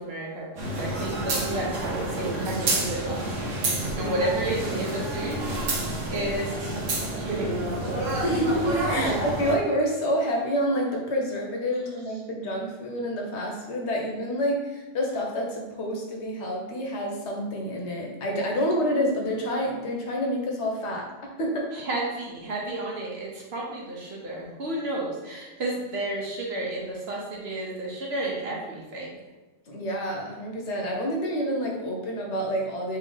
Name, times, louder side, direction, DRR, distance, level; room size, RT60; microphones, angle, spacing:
voice 1, 0.0-3.3 3.9-5.8 6.1-6.6 7.1-8.0 9.0-9.2 21.7-29.2, right 2 dB, 60° right, -3 dB, 1.0 m, -31 dB
sound 1, 0.6-9.5, right 1 dB, 85° right, 1.1 m, -29 dB
voice 2, 8.2-21.0 21.4-21.6 29.7-33.0, equal, 70° left, 0 dB, 1.0 m, -28 dB
3.3 x 2.7 x 3.8 m, 1.2 s
omnidirectional pair, 1.2 m